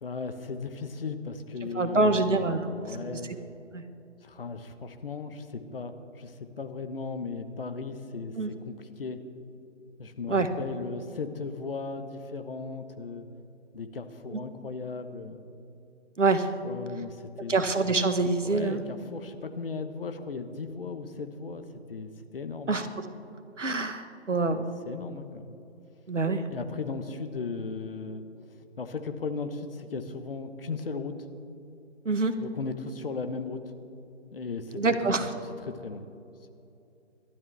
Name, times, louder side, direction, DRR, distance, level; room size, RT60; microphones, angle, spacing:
voice 1, 0.0-2.3 2.7-3.4 4.2-9.2 10.0-13.2 13.7-15.4 16.6-17.6 18.4-22.8 24.9-25.5 26.5-28.2 28.8-31.3 32.4-33.7 34.3-35.3 35.6-36.0, left 4 dB, 50° left, 8 dB, 1.2 m, -37 dB
voice 2, 1.6-3.2 3.7-3.8 8.4-8.5 10.3-10.5 14.3-14.4 16.2-16.5 17.5-18.8 22.7-22.9 23.6-24.7 26.1-26.4 32.0-32.3 34.7-35.3, right 3 dB, 75° right, 9 dB, 1.4 m, -26 dB
30.0 x 12.5 x 3.4 m, 2.7 s
figure-of-eight pair, 145°, 37 cm